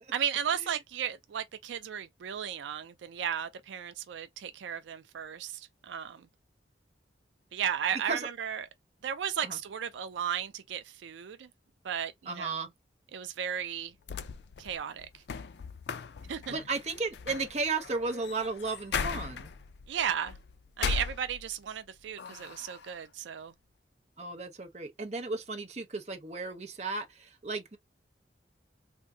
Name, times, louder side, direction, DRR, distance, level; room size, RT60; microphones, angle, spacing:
voice 1, 0.1-6.3 7.5-8.7 9.0-11.5 11.8-12.7 13.1-13.9 14.6-15.1 16.3-16.5 19.9-20.4 20.8-23.5, right 8 dB, 85° right, 0.4 m, -35 dB
voice 2, 12.3-12.7 16.5-19.5 24.2-27.8, right 3 dB, 35° right, 0.7 m, -34 dB
sound 1, 13.8-21.8 22.2-23.0, left 5 dB, 70° left, 0.4 m, -38 dB
3.5 x 2.6 x 2.7 m
head